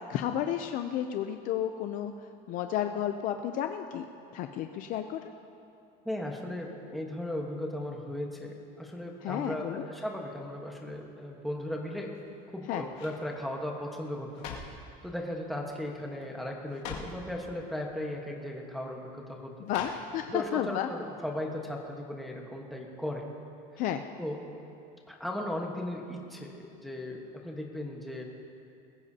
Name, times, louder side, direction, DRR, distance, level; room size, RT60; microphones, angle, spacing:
voice 1, 0.1-2.1 2.5-4.1 4.3-5.2 9.2-9.9 12.7-12.8 19.6-20.9 23.8-24.0, left 10 dB, 45° left, 7 dB, 0.5 m, -32 dB
voice 2, 6.0-12.1 12.5-14.5 15.0-19.5 20.3-23.3 24.2-24.4 25.1-28.2, left 1 dB, ahead, -1 dB, 1.2 m, -37 dB
sound 1, 12.1-12.5 12.9-13.3 14.0-14.9 15.7-15.9 16.2-16.3 16.7-17.2 18.2-18.3 19.7-20.4 20.8-20.9, left 6 dB, 90° left, 2.1 m, -43 dB
21.5 x 15.0 x 2.8 m, 2.6 s
cardioid pair, 175°, 18 cm